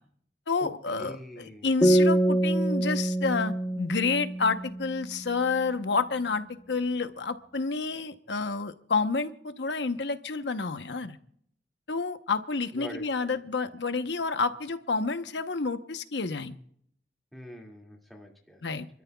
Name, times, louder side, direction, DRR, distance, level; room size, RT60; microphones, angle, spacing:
voice 1, 0.5-11.2 11.9-16.6 18.6-18.9, left 4 dB, 80° left, 9 dB, 0.9 m, -29 dB
voice 2, 1.0-1.7 12.7-13.4 17.3-18.8, equal, ahead, -1 dB, 2.3 m, -44 dB
sound 1, 1.8-5.3, right 1 dB, 15° left, 1.1 m, -25 dB
29.0 x 13.0 x 2.3 m, 0.64 s
head